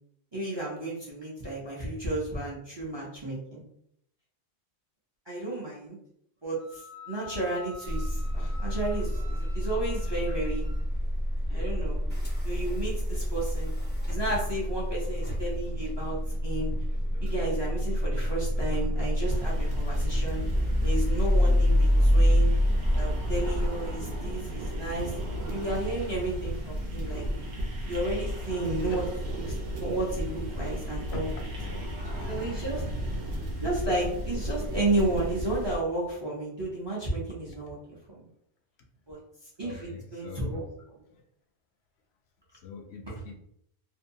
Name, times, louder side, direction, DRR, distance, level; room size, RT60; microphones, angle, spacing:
voice 1, 0.3-3.6 5.3-6.0 6.4-10.6 11.5-12.0 12.4-13.7 14.1-16.7 17.2-20.4 20.8-22.5 22.9-25.1 25.5-27.2 27.8-29.0 29.4-31.3 32.3-32.8 33.6-38.3 39.1-39.2 39.6-40.6, right 2 dB, 30° right, -5 dB, 0.5 m, -32 dB
Wind instrument woodwind instrument, 6.6-10.9, left 3 dB, 55° left, 0.6 m, -48 dB
sound 1, 7.9-23.7, equal, 10° left, 0.6 m, -27 dB
voice 2, 11.5-11.8 12.1-12.3 13.1-13.2 28.8-29.0 31.1-32.3 32.8-32.9 39.6-40.6 41.1-41.2 42.5-43.4, left 5 dB, 75° left, 3 dB, 0.8 m, -43 dB
sound 2, 19.2-35.8, equal, 75° right, 1.0 m, -34 dB
2.6 x 2.2 x 2.6 m, 0.70 s
omnidirectional pair, 1.1 m